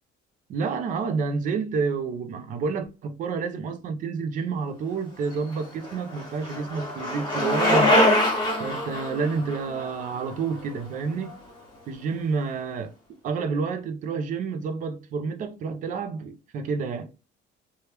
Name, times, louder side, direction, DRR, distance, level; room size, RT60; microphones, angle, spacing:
voice 1, 0.5-8.0 8.6-11.4 11.9-12.9 13.2-17.1, right 5 dB, 40° right, 0.4 m, -29 dB
Bicycle, 5.3-11.3, left 1 dB, 25° left, 1.4 m, -24 dB
3.2 x 2.3 x 2.8 m
cardioid pair, 165°, 20 cm